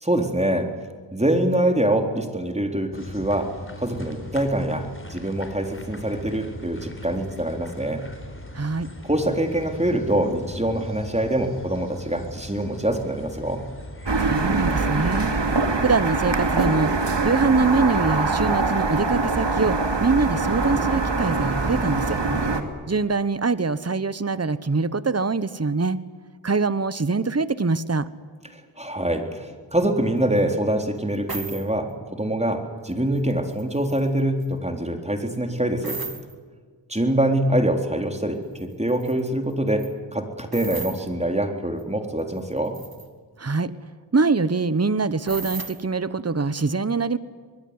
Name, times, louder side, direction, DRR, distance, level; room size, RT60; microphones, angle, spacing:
voice 1, 0.0-0.7 1.1-3.5 3.8-8.0 9.0-13.6 28.5-36.0 36.9-39.9 40.1-42.8, right 1 dB, 15° right, 4 dB, 3.8 m, -24 dB
sound 1, 2.9-18.7, left 1 dB, 25° left, 4.1 m, -39 dB
voice 2, 8.5-8.9 14.2-15.3 15.8-16.9 17.2-22.2 22.9-26.0 26.4-28.1 43.4-43.7 44.1-47.2, right 4 dB, 35° right, 15 dB, 1.2 m, -23 dB
sound 2, 14.1-22.6, right 3 dB, 70° right, 2.6 m, -23 dB
sound 3, 30.4-30.5 31.3-31.7 32.9-33.2 33.5-34.5 35.8-36.3 38.6-38.7 38.9-39.3 39.7-39.9 40.5-41.0 41.8-41.9 42.2-43.1 45.3-45.8, right 4 dB, 50° right, 2.6 m, -35 dB
24.5 x 21.0 x 9.8 m, 1.5 s
wide cardioid pair, 45°, 45 cm